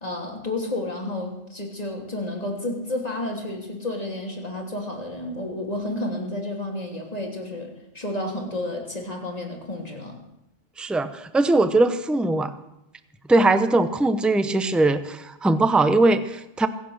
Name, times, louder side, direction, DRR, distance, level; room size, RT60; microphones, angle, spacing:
voice 1, 0.0-10.2, left 1 dB, 30° left, 0 dB, 3.2 m, -31 dB
voice 2, 10.8-12.5 13.3-16.7, right 2 dB, ahead, 11 dB, 0.6 m, -20 dB
24.5 x 8.4 x 6.6 m, 0.87 s
omnidirectional pair, 1.3 m